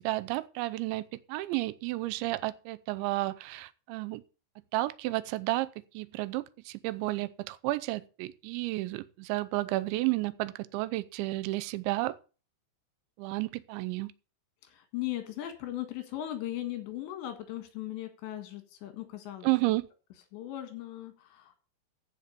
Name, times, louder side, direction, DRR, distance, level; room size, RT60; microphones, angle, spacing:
voice 1, 0.0-4.2 4.7-5.7 5.9-12.2 13.2-14.1 19.4-19.9, right 19 dB, 85° right, 3.0 m, -32 dB
voice 2, 14.6-19.5 20.3-21.6, left 13 dB, 80° left, 4.0 m, -38 dB
14.5 x 5.3 x 6.7 m
omnidirectional pair, 5.1 m